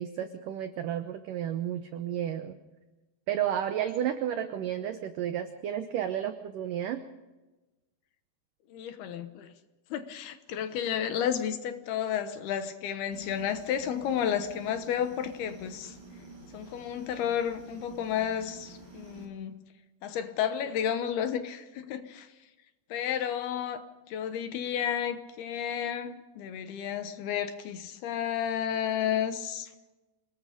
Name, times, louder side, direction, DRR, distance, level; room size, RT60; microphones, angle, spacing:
voice 1, 0.0-2.6 3.3-7.0, right 10 dB, 85° right, 1.8 m, -32 dB
voice 2, 8.7-9.5 9.9-16.0 16.5-19.6 20.0-22.3 22.9-23.8 24.1-29.7, left 9 dB, 70° left, 2.8 m, -32 dB
sound 1, 13.1-19.3, right 3 dB, 20° right, 4.7 m, -49 dB
27.5 x 20.0 x 5.1 m
omnidirectional pair, 5.2 m